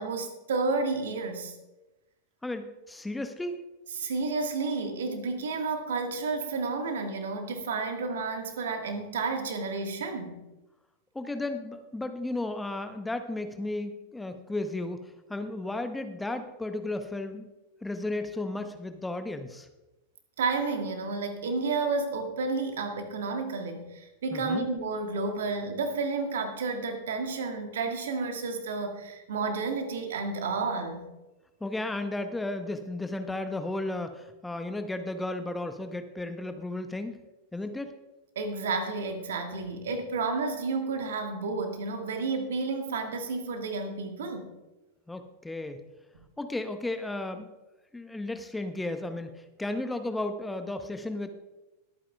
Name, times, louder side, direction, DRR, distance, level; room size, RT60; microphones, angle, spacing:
voice 1, 0.0-1.5 3.9-10.4 20.4-31.1 38.3-44.5 46.1-46.2, right 4 dB, 60° right, 5 dB, 1.5 m, -31 dB
voice 2, 2.4-3.6 11.1-17.5 17.8-19.7 24.3-24.7 31.6-37.2 37.5-37.9 45.1-45.8 46.4-47.5 47.9-51.3, left 2 dB, 5° left, 8 dB, 0.7 m, -34 dB
21.5 x 8.7 x 2.3 m, 1.1 s
figure-of-eight pair, 90°, 0 cm